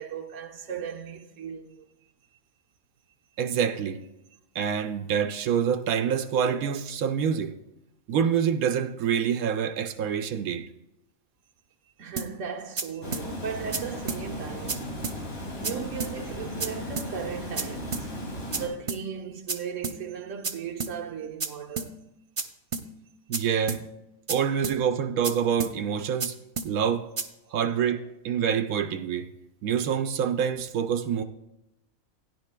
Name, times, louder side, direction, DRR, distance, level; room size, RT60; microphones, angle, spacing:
voice 1, 0.0-1.8 12.0-15.0 15.5-18.2 18.6-22.0 27.4-27.6, right 7 dB, 65° right, 1.3 m, -37 dB
voice 2, 3.4-4.0 4.5-7.5 8.1-10.7 23.3-23.8 24.3-26.4 26.6-27.1 27.5-29.3 29.6-31.2, right 8 dB, 90° right, 1.1 m, -26 dB
sound 1, 12.2-12.3 12.8-12.9 13.1-13.3 13.7-13.8 14.1-14.2 14.7-14.8 15.0-15.2 15.6-15.7 16.0-16.1 16.6-16.7 17.0-17.1 17.6-17.7 17.9-18.1 18.5-18.6 18.9-19.0 19.5-19.6 19.8-20.0 20.4-20.5 20.8-20.9 21.4-21.5 21.8-21.9 22.4-22.5 22.7-22.9 23.3-23.4 23.7-23.8 24.3-24.4 24.6-24.8 25.2-25.3 25.6-25.7 26.2-26.3 26.6-26.7 27.2-27.3, right 4 dB, 40° right, 0.4 m, -31 dB
Water, 13.0-18.7, equal, 85° left, 3.0 m, -36 dB
16.5 x 10.5 x 2.2 m
omnidirectional pair, 1.5 m